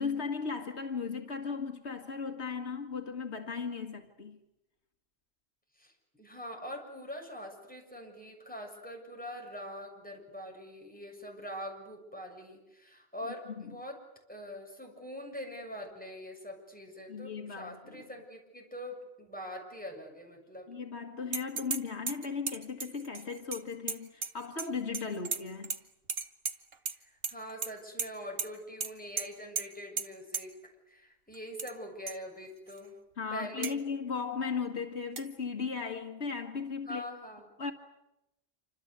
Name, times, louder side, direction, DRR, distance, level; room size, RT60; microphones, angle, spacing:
voice 1, 0.0-4.4 13.6-13.7 17.1-18.0 20.7-25.8 33.2-37.0 37.6-37.7, left 5 dB, 80° left, 2.1 m, -36 dB
voice 2, 6.2-14.0 14.3-20.7 27.0-30.5 30.9-32.9 33.3-33.8 36.9-37.5, equal, 10° left, 7.1 m, -43 dB
sound 1, 21.3-21.8 22.1-24.7 24.9-25.8 26.1-27.0 27.2-27.7 28.0-28.1 28.4-28.5 28.8-28.9 29.2-29.3 29.6-29.7 30.0-30.1 30.3-30.4 31.3-31.7 32.1-32.2 32.7-32.8 33.6-33.7 35.2-35.3, right 5 dB, 60° right, 1.4 m, -35 dB
27.5 x 26.0 x 8.2 m
omnidirectional pair, 1.1 m